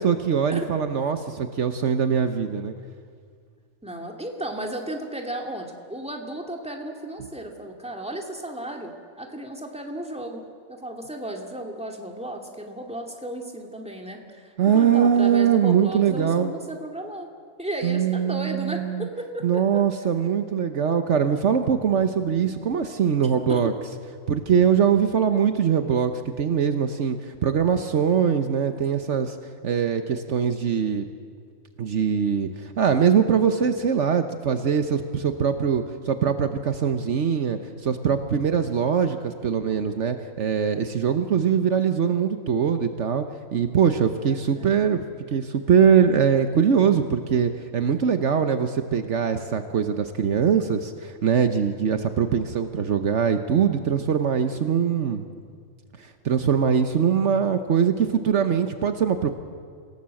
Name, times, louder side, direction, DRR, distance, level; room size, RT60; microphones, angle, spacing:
voice 1, 0.0-2.7 14.6-16.5 17.8-19.1 19.4-23.7 24.3-26.1 26.4-29.4 29.6-31.0 31.8-43.2 43.5-45.0 45.3-55.2 56.0-59.3, right 7 dB, 65° right, 8 dB, 1.3 m, -22 dB
voice 2, 3.8-10.4 10.7-17.3 17.6-19.6 23.5-23.6 28.9-29.2 44.2-44.8, right 1 dB, 5° right, 2 dB, 2.4 m, -34 dB
27.0 x 17.0 x 7.7 m, 2.1 s
omnidirectional pair, 1.3 m